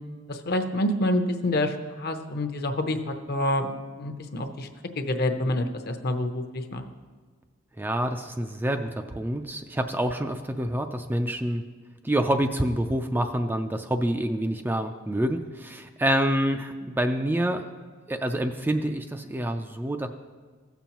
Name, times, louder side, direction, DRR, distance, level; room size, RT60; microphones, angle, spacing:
voice 1, 0.3-4.7 5.0-6.8, left 1 dB, 50° left, 6 dB, 0.7 m, -27 dB
voice 2, 7.8-11.6 12.0-17.7 18.1-20.1, right 1 dB, 10° right, 5 dB, 0.3 m, -27 dB
16.0 x 7.0 x 3.0 m, 1.5 s
head